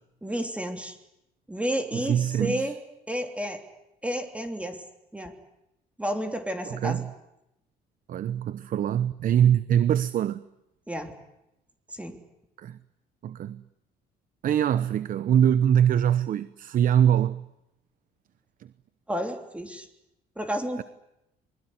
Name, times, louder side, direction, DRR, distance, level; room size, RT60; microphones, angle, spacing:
voice 1, 0.2-0.9 1.5-2.7 3.1-3.6 4.0-4.8 5.1-5.3 6.0-7.0 10.9-11.1 11.9-12.2 19.1-19.9 20.4-20.8, equal, 5° right, 3.2 m, -31 dB
voice 2, 1.9-2.7 6.6-7.1 8.1-10.4 12.6-12.8 13.2-13.6 14.4-17.5 18.6-18.7 20.8-20.9, right 9 dB, 55° right, 0.9 m, -23 dB
27.0 x 21.5 x 9.8 m
cardioid pair, 110°, 17 cm